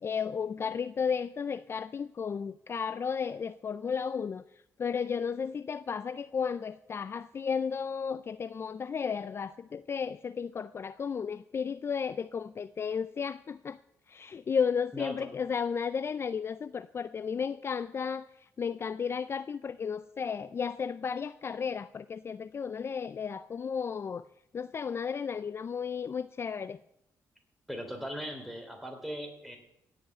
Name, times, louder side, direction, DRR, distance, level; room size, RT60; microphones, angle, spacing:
voice 1, 0.0-4.4 4.8-13.8 14.1-18.3 18.6-24.2 24.5-26.8, left 6 dB, 40° left, 14 dB, 0.4 m, -33 dB
voice 2, 14.9-15.3 27.7-29.6, equal, ahead, 3 dB, 3.3 m, -39 dB
16.5 x 5.8 x 8.7 m, 0.83 s
cardioid pair, 100°, 7 cm